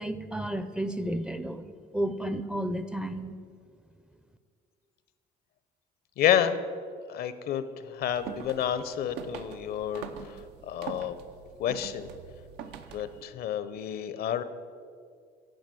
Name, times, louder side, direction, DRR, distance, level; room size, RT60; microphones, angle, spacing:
voice 1, 0.0-1.7 1.9-3.3, right 1 dB, 5° right, 11 dB, 0.4 m, -32 dB
voice 2, 6.2-6.6 7.1-10.4 10.7-11.2 11.6-12.1 12.9-14.4, left 10 dB, 65° left, 13 dB, 0.6 m, -29 dB
sound 1, 8.0-13.2, right 7 dB, 85° right, 0.7 m, -43 dB
10.5 x 5.0 x 7.6 m, 2.2 s
cardioid pair, 110°, 17 cm